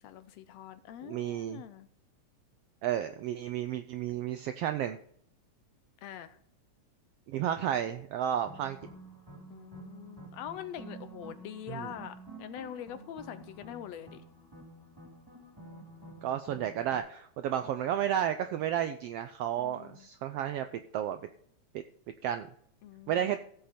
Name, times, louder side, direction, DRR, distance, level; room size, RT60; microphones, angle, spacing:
voice 1, 0.0-1.9 6.0-6.4 9.5-14.2 19.6-20.1 22.8-23.4, left 10 dB, 75° left, 12 dB, 1.7 m, -44 dB
voice 2, 1.0-1.6 2.8-5.0 7.3-8.8 11.7-11.9 16.2-20.7 20.9-21.2 22.2-22.5 23.1-23.4, right 10 dB, 90° right, 9 dB, 1.4 m, -32 dB
sound 1, 8.4-17.0, right 2 dB, 10° right, 2.5 m, -50 dB
15.0 x 7.9 x 4.3 m, 0.65 s
omnidirectional pair, 3.3 m